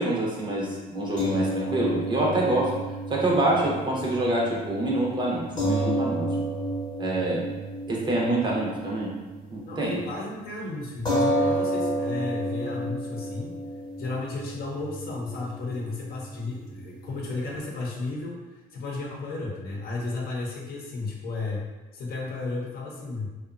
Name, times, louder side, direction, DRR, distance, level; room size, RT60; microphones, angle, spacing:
voice 1, 0.0-2.7 3.1-6.3 7.0-7.5 7.9-9.1 9.5-10.0, right 1 dB, 25° right, -4 dB, 0.7 m, -26 dB
sound 1, 1.2-9.7 10.0-10.2 11.0-17.6, right 1 dB, 25° left, 0.8 m, -31 dB
voice 2, 9.6-13.6 14.0-21.7 21.9-23.3, left 3 dB, 65° left, -2 dB, 0.7 m, -33 dB
2.6 x 2.2 x 2.4 m, 1.2 s
cardioid pair, 110°, 17 cm